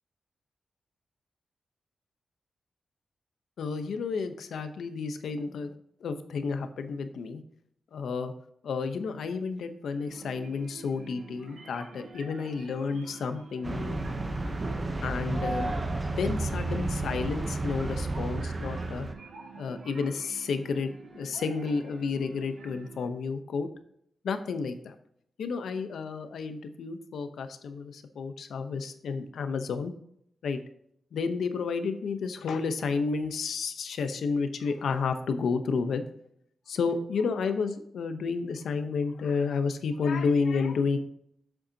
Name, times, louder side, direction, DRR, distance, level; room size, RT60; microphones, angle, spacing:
voice 1, 3.6-5.7 6.0-7.4 7.9-8.3 8.6-14.0 15.0-15.7 16.2-19.1 19.6-23.7 24.2-24.9 25.4-29.9 30.4-30.6 31.1-36.0 36.7-41.0, left 5 dB, 90° left, 8 dB, 0.8 m, -31 dB
sound 1, 10.0-23.1, right 5 dB, 65° right, 1.6 m, -48 dB
sound 2, 13.6-19.1, right 2 dB, 25° right, 0.8 m, -31 dB
7.9 x 7.2 x 2.8 m, 0.69 s
wide cardioid pair, 105°, 0 cm